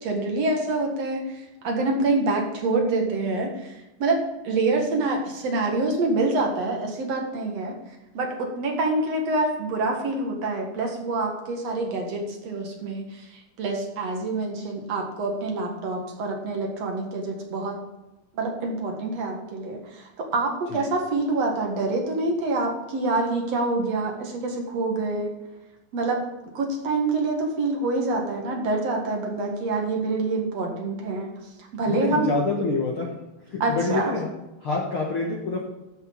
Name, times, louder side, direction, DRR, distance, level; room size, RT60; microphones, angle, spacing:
voice 1, 0.0-7.8 8.1-17.8 18.3-25.3 25.9-26.2 26.5-31.3 31.7-32.3 33.6-34.1, right 2 dB, 50° right, 1 dB, 2.1 m, -26 dB
voice 2, 31.9-33.1 33.4-34.3 34.6-35.6, left 3 dB, 85° left, -2 dB, 1.1 m, -26 dB
13.5 x 6.5 x 5.2 m, 1.0 s
omnidirectional pair, 5.0 m